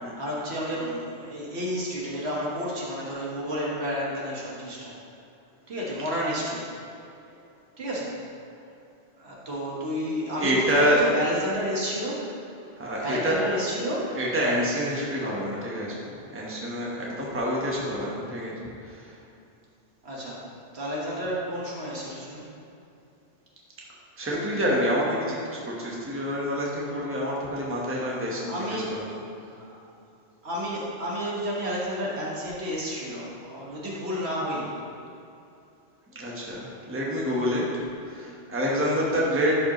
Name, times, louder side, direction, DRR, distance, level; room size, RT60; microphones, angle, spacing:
voice 1, 0.2-4.9 5.7-6.6 7.8-8.2 9.2-12.3 13.0-14.2 20.0-20.4 20.7-22.4 28.4-29.0 29.5-29.6 30.4-34.7 38.9-39.2, equal, 65° right, -5 dB, 1.6 m, -31 dB
voice 2, 10.4-11.0 12.8-13.4 14.1-19.1 24.2-29.2 36.1-39.6, equal, 10° right, -4 dB, 1.0 m, -27 dB
11.5 x 5.1 x 3.0 m, 2.7 s
omnidirectional pair, 1.2 m